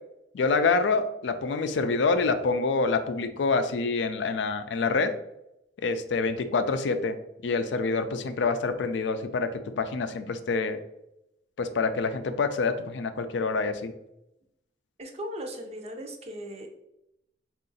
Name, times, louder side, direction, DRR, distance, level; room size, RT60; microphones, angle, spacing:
voice 1, 0.3-5.1 5.8-7.2 7.4-10.8 11.6-13.9, left 4 dB, 70° left, 9 dB, 0.4 m, -26 dB
voice 2, 15.0-16.7, equal, 35° right, 3 dB, 0.6 m, -38 dB
3.8 x 2.4 x 3.9 m, 0.84 s
head